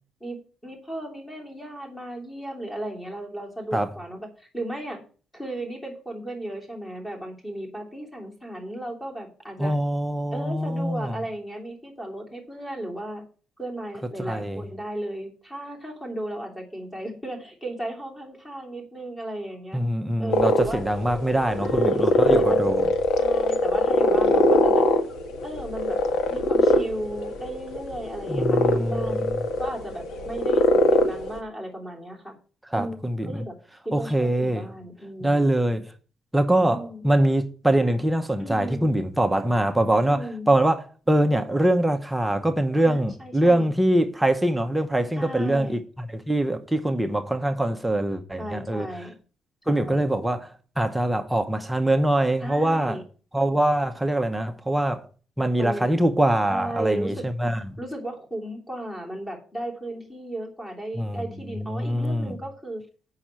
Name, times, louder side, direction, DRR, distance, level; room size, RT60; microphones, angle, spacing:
voice 1, 0.2-5.0 5.3-9.8 10.3-13.2 13.6-19.8 20.2-20.8 21.6-22.7 23.2-24.9 25.4-26.0 26.3-29.3 29.6-32.3 32.7-33.5 33.8-35.5 36.6-37.1 38.4-38.8 40.0-40.5 42.7-43.7 45.1-45.8 48.4-49.1 49.7-50.0 52.4-53.0 55.6-55.9 56.5-57.3 57.8-62.8, right 1 dB, 15° left, 2.9 m, -35 dB
voice 2, 9.6-11.1 14.2-14.6 19.7-22.9 28.3-29.3 32.7-33.4 33.9-34.7 35.2-35.9 36.3-45.8 46.1-48.9 49.7-53.0 53.3-55.1 55.4-57.6 61.0-61.2 61.5-62.3, right 1 dB, 5° right, 0.8 m, -23 dB
sound 1, 20.3-31.4, left 1 dB, 75° left, 1.6 m, -22 dB
7.7 x 5.6 x 7.4 m
cardioid pair, 145°, 0 cm